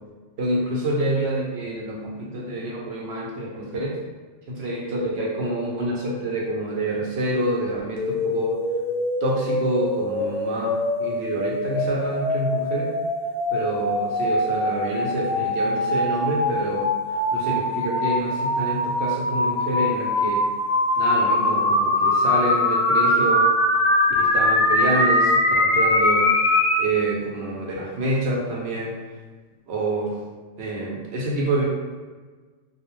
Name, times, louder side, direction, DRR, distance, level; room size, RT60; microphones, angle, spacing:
voice 1, 0.4-4.0 4.5-8.6 9.2-12.9 13.5-20.4 21.0-23.4 24.2-26.3 26.8-28.9 29.7-30.1 30.6-31.7, right 1 dB, 65° right, -3 dB, 0.8 m, -27 dB
sound 1, 8.0-26.9, left 1 dB, 50° left, 0.6 m, -22 dB
2.3 x 2.0 x 3.0 m, 1.4 s
omnidirectional pair, 1.3 m